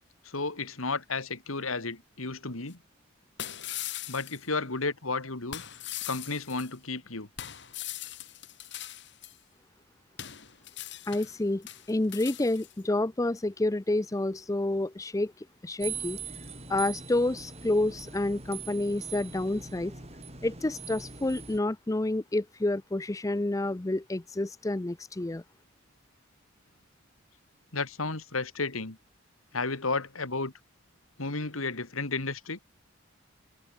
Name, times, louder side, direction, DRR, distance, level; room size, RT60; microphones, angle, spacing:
voice 1, 0.2-2.8 4.1-5.6 6.1-7.3 27.7-29.0 29.5-30.5 31.2-32.6, left 3 dB, 85° left, 2.6 m, -32 dB
sound 1, 2.7-2.8 3.4-4.4 5.5-6.7 7.4-9.4 10.2-11.4 11.6-12.7, left 12 dB, 55° left, 5.3 m, -40 dB
voice 2, 11.1-16.2 16.7-19.9 20.4-25.4, left 2 dB, 15° left, 0.5 m, -29 dB
sound 2, 15.8-21.6, right 6 dB, 30° right, 7.8 m, -41 dB
head